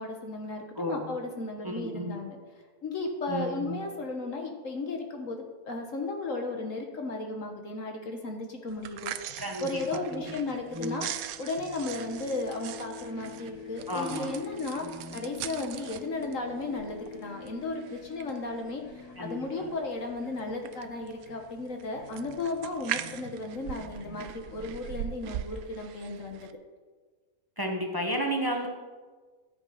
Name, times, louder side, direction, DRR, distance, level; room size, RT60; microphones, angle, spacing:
voice 1, 0.0-2.4 2.8-14.9 15.1-26.5, left 2 dB, 60° left, 3 dB, 1.5 m, -35 dB
voice 2, 0.8-1.1 1.6-2.2 3.3-3.8 9.4-9.7 10.1-10.2 10.7-11.0 13.9-14.3 14.8-15.3 19.2-19.7 27.6-28.7, equal, 15° right, 1 dB, 1.2 m, -33 dB
sound 1, 8.7-26.5, right 11 dB, 75° right, 1.0 m, -42 dB
sound 2, 9.1-11.3 11.6-25.5, left 5 dB, 80° left, 1.8 m, -48 dB
13.5 x 8.1 x 5.5 m, 1.4 s
omnidirectional pair, 1.6 m